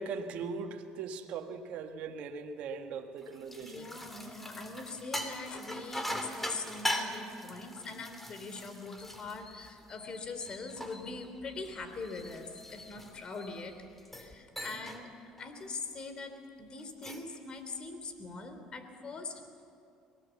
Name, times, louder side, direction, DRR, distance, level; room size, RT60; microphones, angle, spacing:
voice 1, 0.0-3.9, right 5 dB, 65° right, 1.6 m, -40 dB
sound 1, 3.2-10.0 10.5-13.5 14.0-14.3 14.6-15.0 15.4-15.7 16.8-17.4, equal, 5° left, 2.8 m, -40 dB
voice 2, 3.6-19.4, left 3 dB, 40° left, 3.3 m, -42 dB
sound 2, 9.0-14.3, left 3 dB, 25° left, 1.4 m, -56 dB
23.0 x 19.0 x 7.2 m
supercardioid pair, 85°, 2 cm